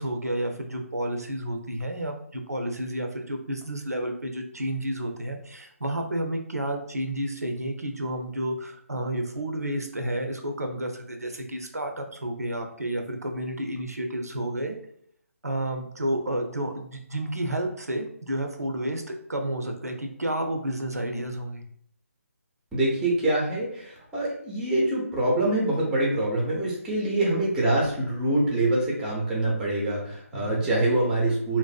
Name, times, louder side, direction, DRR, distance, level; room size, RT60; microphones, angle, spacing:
voice 1, 0.0-14.7 15.4-21.6 30.3-30.7, right 1 dB, 90° right, 4 dB, 0.4 m, -31 dB
voice 2, 22.7-31.6, right 1 dB, 5° right, -4 dB, 0.5 m, -25 dB
2.6 x 2.0 x 2.3 m, 0.67 s
figure-of-eight pair, 145°, 8 cm